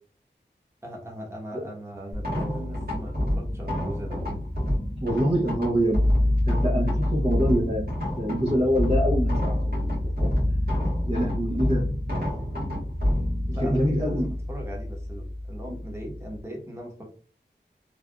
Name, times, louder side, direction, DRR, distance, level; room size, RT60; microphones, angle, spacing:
voice 1, 0.8-4.3 11.4-11.6 13.5-17.1, right 1 dB, 15° right, -2 dB, 1.2 m, -38 dB
sound 1, 2.1-16.4, left 1 dB, 55° right, 1.5 m, -27 dB
voice 2, 5.0-6.0 6.4-7.9 8.2-9.8 10.2-10.3 11.1-11.9 13.6-14.3, equal, 30° right, -5 dB, 0.8 m, -25 dB
3.3 x 2.3 x 2.4 m, 0.40 s
wide cardioid pair, 40°, 19 cm